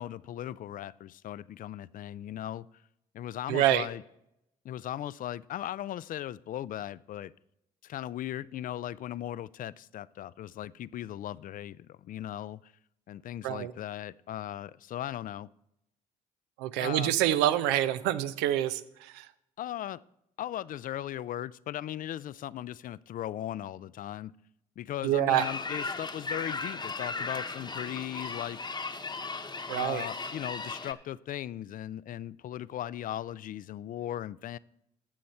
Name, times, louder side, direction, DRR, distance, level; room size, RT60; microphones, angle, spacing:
voice 1, 0.0-2.7 3.1-4.0 4.6-7.3 7.8-12.7 13.1-15.5 16.8-17.1 19.6-20.0 20.4-24.3 24.8-28.6 29.7-34.6, left 12 dB, 55° left, 0.4 m, -38 dB
voice 2, 3.5-3.9 13.4-13.7 16.6-19.3 25.0-25.5 29.7-30.1, right 12 dB, 85° right, 0.6 m, -27 dB
sound 1, 25.3-30.9, left 3 dB, 25° left, 1.0 m, -37 dB
15.0 x 6.4 x 4.3 m
hypercardioid pair, 60°, 17 cm